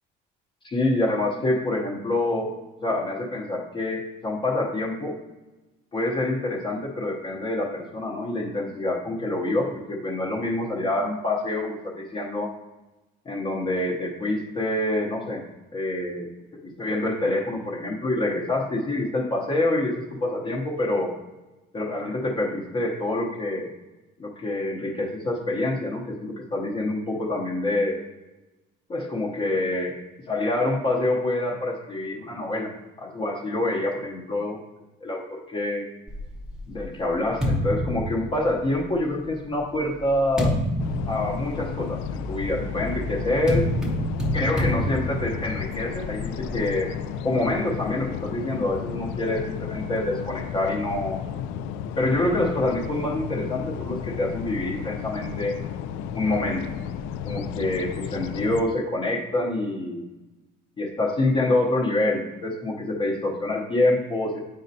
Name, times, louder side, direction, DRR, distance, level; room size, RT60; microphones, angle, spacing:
voice 1, 0.6-2.5 2.8-5.2 5.9-12.5 13.3-15.4 15.7-16.3 16.8-21.1 21.7-23.7 24.2-28.0 28.9-29.9 30.3-32.7 33.0-34.6 35.0-35.9 36.7-40.6 41.1-43.7 44.3-46.9 47.2-51.2 52.0-55.5 56.1-56.7 57.2-60.0 60.8-64.5, left 2 dB, 25° left, -2 dB, 0.8 m, -26 dB
sound 1, 36.1-38.9 39.6-46.7, equal, 5° right, 0.9 m, -29 dB
sound 2, 40.8-58.6, left 8 dB, 85° left, 0.4 m, -33 dB
8.4 x 5.1 x 2.7 m, 1.1 s
cardioid pair, 175°, 20 cm